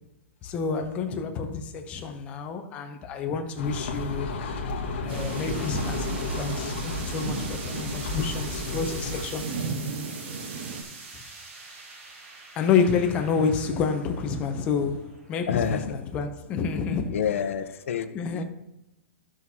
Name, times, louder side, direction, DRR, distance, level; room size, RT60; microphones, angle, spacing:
voice 1, 0.4-4.3 5.0-9.5 12.6-17.2 18.1-18.4, left 5 dB, 15° left, 0.6 m, -28 dB
sound 1, 3.6-9.2, left 2 dB, 50° left, 1.3 m, -32 dB
sound 2, 5.1-10.8, right 4 dB, 50° right, 1.1 m, -35 dB
sound 3, 5.1-16.2, right 3 dB, 65° right, 3.1 m, -45 dB
voice 2, 15.5-16.0 17.1-18.4, left 7 dB, 65° left, 0.7 m, -28 dB
14.5 x 6.0 x 2.8 m
hypercardioid pair, 175°, 8 cm